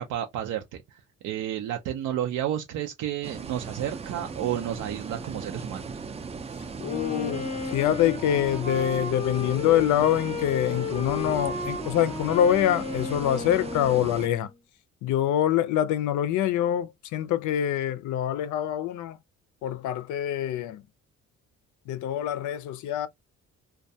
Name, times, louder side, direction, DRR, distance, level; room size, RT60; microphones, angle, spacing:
voice 1, 0.0-5.9, right 11 dB, 80° right, 0.5 m, -31 dB
sound 1, 3.2-14.3, right 5 dB, 20° right, 0.4 m, -38 dB
voice 2, 6.8-14.5 15.0-19.2 19.6-20.8 21.9-23.1, left 11 dB, 75° left, 0.5 m, -25 dB
Wind instrument woodwind instrument, 6.8-14.5, left 3 dB, 20° left, 0.6 m, -34 dB
2.2 x 2.2 x 2.6 m
cardioid pair, 90°, 30 cm